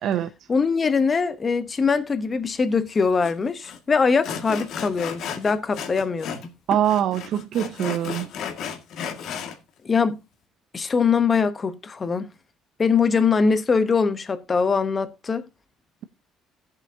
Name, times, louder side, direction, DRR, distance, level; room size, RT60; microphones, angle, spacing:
voice 1, 0.5-6.5 9.8-10.2 10.7-12.3 12.8-15.4, left 5 dB, 25° left, 1.0 m, -22 dB
Sawing, 3.2-3.3 3.6-3.8 4.2-6.5 6.7-9.6, left 7 dB, 65° left, 1.9 m, -33 dB
voice 2, 6.7-8.3, right 10 dB, 60° right, 0.7 m, -23 dB
16.5 x 7.8 x 2.8 m
cardioid pair, 135°, 0 cm